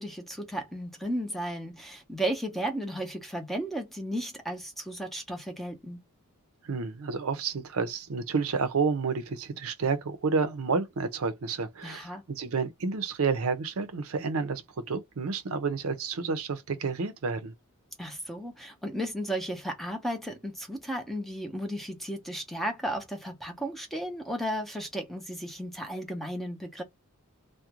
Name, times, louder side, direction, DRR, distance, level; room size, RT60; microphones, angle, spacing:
voice 1, 0.0-6.0 11.8-12.2 18.0-26.8, right 1 dB, ahead, 0.6 m, -34 dB
voice 2, 6.6-17.5, right 5 dB, 70° right, 0.6 m, -30 dB
2.4 x 2.1 x 2.9 m
head